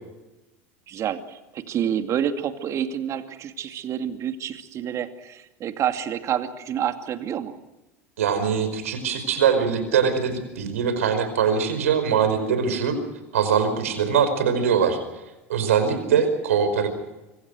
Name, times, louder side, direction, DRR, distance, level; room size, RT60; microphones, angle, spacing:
voice 1, 0.9-7.6 16.1-16.2, right 9 dB, 40° right, 8 dB, 2.5 m, -28 dB
voice 2, 8.2-13.0 13.3-15.0 15.5-16.9, right 7 dB, 75° right, 10 dB, 5.0 m, -22 dB
25.5 x 25.0 x 6.3 m, 1.1 s
hypercardioid pair, 80°, 8 cm